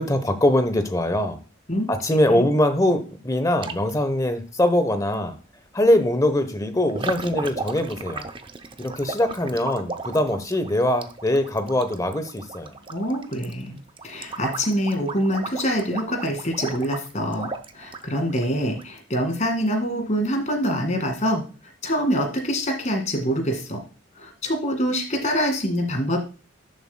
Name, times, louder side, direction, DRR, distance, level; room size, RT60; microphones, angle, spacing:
voice 1, 0.0-1.4 1.9-5.3 5.7-8.2 8.8-12.7, left 1 dB, 15° left, 10 dB, 0.9 m, -22 dB
sound 1, 3.6-4.0 5.1-5.2 6.9-18.8, right 3 dB, 25° right, 0.5 m, -35 dB
voice 2, 12.9-13.8 14.0-17.5 17.7-21.4 21.8-23.8 24.2-26.2, equal, 35° left, 4 dB, 2.0 m, -25 dB
10.5 x 7.1 x 2.2 m, 0.35 s
head